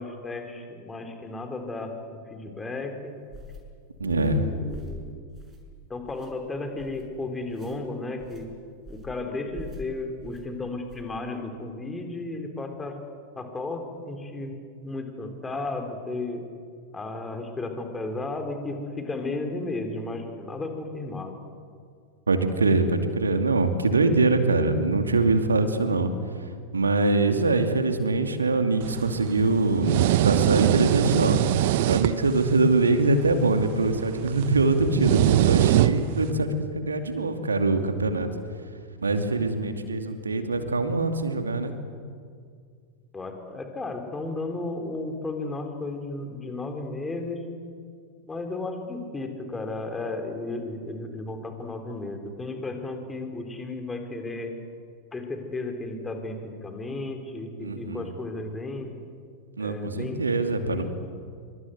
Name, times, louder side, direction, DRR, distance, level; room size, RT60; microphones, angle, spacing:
voice 1, 0.0-1.9 2.3-3.1 4.0-5.2 5.9-8.5 8.9-13.0 13.4-13.8 14.1-14.5 14.8-16.4 16.9-21.3 35.1-35.2 35.7-35.8 36.3-36.4 43.1-47.4 48.3-54.5 55.1-58.9 59.6-60.9, left 2 dB, 15° left, 5 dB, 4.2 m, -34 dB
sound 1, 3.3-3.6 4.1-4.4 4.7-5.0 5.4-5.7 6.1-6.3 6.8-7.0 7.5-7.8 8.2-8.4 8.8-9.2 9.5-9.8 10.2-10.4 10.9-11.1, left 1 dB, 25° right, 6.7 m, -44 dB
voice 2, 4.0-4.5 22.3-26.1 26.7-30.0 30.2-31.4 31.9-36.5 36.8-38.3 39.0-41.7 57.6-58.1 59.6-60.9, right 3 dB, 75° right, 7 dB, 2.5 m, -23 dB
sound 2, 28.8-36.3, right 13 dB, 50° right, 1.1 m, -24 dB
27.0 x 24.5 x 8.2 m, 2.2 s
figure-of-eight pair, 90°, 0 cm